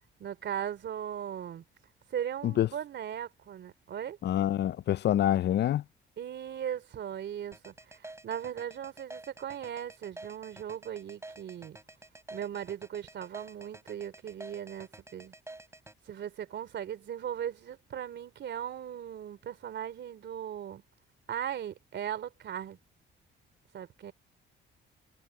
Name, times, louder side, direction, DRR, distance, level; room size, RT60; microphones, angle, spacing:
voice 1, 0.2-1.6 2.1-4.2 6.2-11.8 12.3-15.3 16.1-20.8 21.3-22.8 23.7-24.1, right 9 dB, 65° right, 3.3 m, -38 dB
voice 2, 4.2-5.8, left 11 dB, 60° left, 0.6 m, -26 dB
sound 1, 7.5-15.9, right 2 dB, 15° right, 4.3 m, -48 dB
cardioid pair, 90°, 20 cm